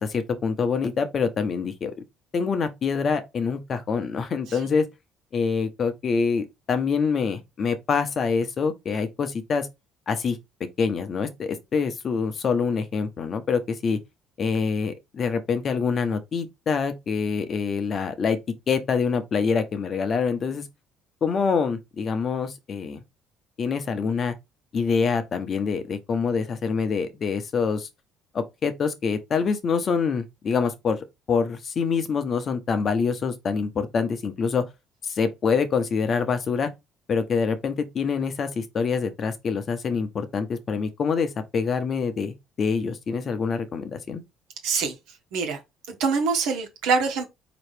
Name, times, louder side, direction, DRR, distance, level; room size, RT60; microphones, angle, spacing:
voice 1, 0.0-1.9 2.3-4.9 5.3-9.7 10.1-10.4 10.8-14.0 14.4-18.4 18.7-20.7 21.2-23.0 23.6-24.3 24.7-27.9 28.3-34.6 35.0-36.7 37.1-44.2, left 5 dB, 50° left, 0.9 m, -25 dB
voice 2, 44.6-45.0 45.3-45.6 45.9-47.2, right 5 dB, 80° right, 1.3 m, -24 dB
4.1 x 3.0 x 3.3 m
supercardioid pair, 70°, 0 cm